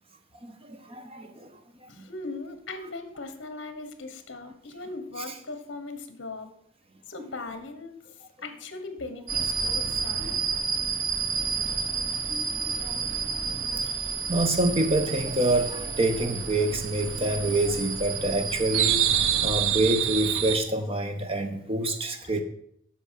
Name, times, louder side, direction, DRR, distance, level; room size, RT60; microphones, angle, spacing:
voice 1, 0.4-1.5 10.2-10.3 12.3-13.2 13.6-13.8 14.3-22.4, right 1 dB, 30° right, 6 dB, 0.9 m, -27 dB
voice 2, 1.9-6.5 7.1-8.0 8.4-10.4, left 3 dB, 60° left, 8 dB, 1.1 m, -39 dB
sound 1, 9.3-20.6, right 7 dB, 90° right, 0.7 m, -28 dB
8.3 x 5.9 x 5.7 m, 0.70 s
head